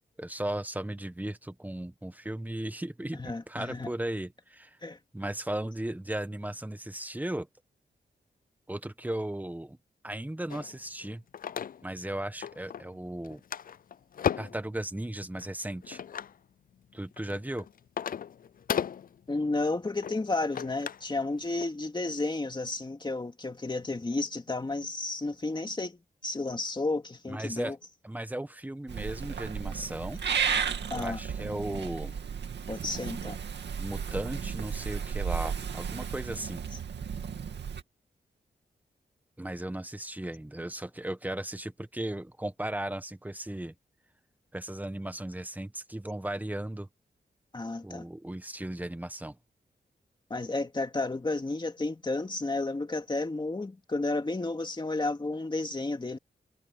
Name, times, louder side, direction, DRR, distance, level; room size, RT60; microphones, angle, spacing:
voice 1, 0.2-4.8 5.1-7.5 8.7-9.8 10.0-11.2 11.8-13.4 14.4-16.0 16.9-17.6 27.3-27.7 28.0-30.2 30.9-32.2 33.8-36.6 39.4-43.7 44.5-46.9 47.8-49.4, right 1 dB, 10° right, 1.2 m, -36 dB
voice 2, 3.2-3.9 4.8-5.0 19.3-27.8 30.9-31.2 32.7-33.4 47.5-48.1 50.3-56.2, left 2 dB, 25° left, 2.5 m, -32 dB
sound 1, 10.5-12.1 12.4-13.0 13.2-14.7 15.4-16.4 17.0-21.1 21.4-21.7, left 8 dB, 55° left, 0.4 m, -35 dB
Purr / Meow, 28.9-37.8, right 7 dB, 90° right, 2.3 m, -34 dB
wide cardioid pair, 100°, 17 cm